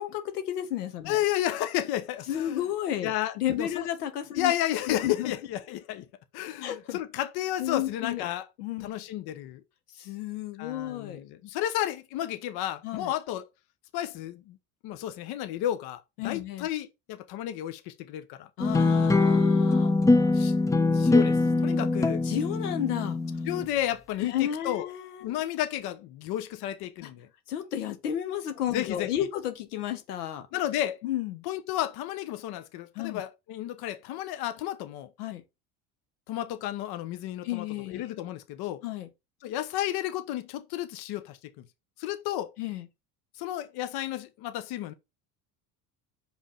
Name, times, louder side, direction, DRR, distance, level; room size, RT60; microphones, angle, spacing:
voice 1, 0.0-1.2 2.3-4.5 4.9-5.3 6.6-7.0 7.6-8.2 8.6-8.9 10.0-11.2 12.8-13.1 16.2-16.7 18.6-20.0 22.2-23.2 24.2-25.4 27.0-27.1 27.5-30.5 31.0-31.4 32.9-33.2 35.2-35.4 37.4-38.0 38.8-39.1 42.6-42.9, left 11 dB, 90° left, 1.2 m, -32 dB
voice 2, 1.0-2.6 3.0-3.9 4.4-6.1 6.3-8.4 8.8-9.6 10.6-13.5 13.9-14.6 14.8-18.5 20.1-20.5 20.9-22.2 23.5-24.9 25.2-27.3 28.7-29.3 30.5-31.0 31.5-35.1 36.3-38.8 39.4-41.4 42.0-42.5 43.4-44.9, left 12 dB, 55° left, 0.9 m, -32 dB
sound 1, 18.6-23.7, left 3 dB, 10° left, 0.4 m, -23 dB
5.0 x 3.5 x 5.6 m
hypercardioid pair, 90°, 45 cm